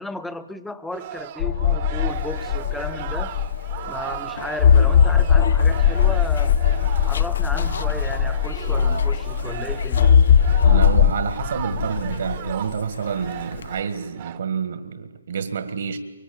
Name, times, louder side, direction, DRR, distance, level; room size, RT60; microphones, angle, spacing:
voice 1, 0.0-3.3 3.9-6.6 7.0-10.1, left 2 dB, 5° left, 13 dB, 0.8 m, -34 dB
sound 1, 0.9-14.4, right 12 dB, 35° right, 1.0 m, -36 dB
sound 2, 1.4-4.0 4.6-9.3 9.9-11.1, left 7 dB, 45° left, 1.0 m, -18 dB
Zipper (clothing), 2.1-13.8, left 6 dB, 70° left, 0.9 m, -31 dB
voice 2, 10.6-16.0, right 6 dB, 65° right, 9 dB, 1.8 m, -28 dB
24.5 x 23.0 x 8.9 m, 1.2 s
hypercardioid pair, 150°, 0 cm